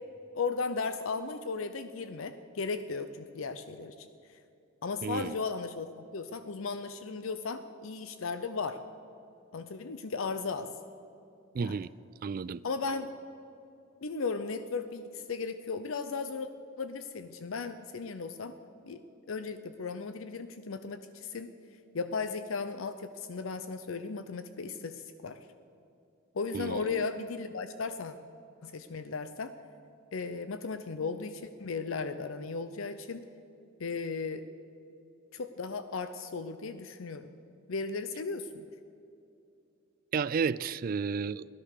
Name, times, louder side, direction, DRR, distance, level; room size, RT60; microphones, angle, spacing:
voice 1, 0.3-4.4 4.8-8.8 9.5-10.7 11.6-11.8 12.6-13.1 14.0-16.5 16.8-18.5 18.8-19.0 19.3-21.5 21.9-25.4 26.3-28.2 28.6-29.5 30.1-33.3 33.8-34.4 35.3-37.3 37.7-38.7, left 4 dB, 75° left, 10 dB, 0.6 m, -36 dB
voice 2, 5.0-5.4 11.5-11.9 12.2-12.6 26.5-27.0 40.1-41.5, right 5 dB, 45° right, 19 dB, 0.3 m, -32 dB
16.5 x 13.0 x 6.6 m, 2.7 s
head